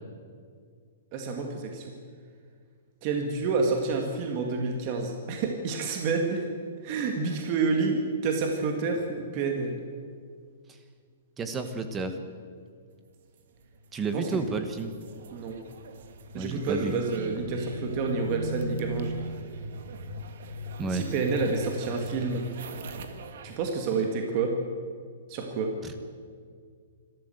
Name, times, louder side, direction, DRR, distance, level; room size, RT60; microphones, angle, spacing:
voice 1, 1.1-1.9 3.0-6.5 6.8-9.8 14.1-14.4 15.3-15.6 16.3-19.2 20.9-22.4 23.4-24.6 25.3-25.7, right 4 dB, 30° right, 3 dB, 2.0 m, -29 dB
voice 2, 11.4-12.2 13.9-14.9 16.3-16.9 20.8-21.1 25.8-25.9, right 4 dB, 10° right, 8 dB, 1.3 m, -31 dB
sound 1, 13.6-23.6, right 1 dB, 60° right, 1.9 m, -39 dB
26.5 x 13.0 x 8.0 m, 2.1 s
hypercardioid pair, 170°, 0 cm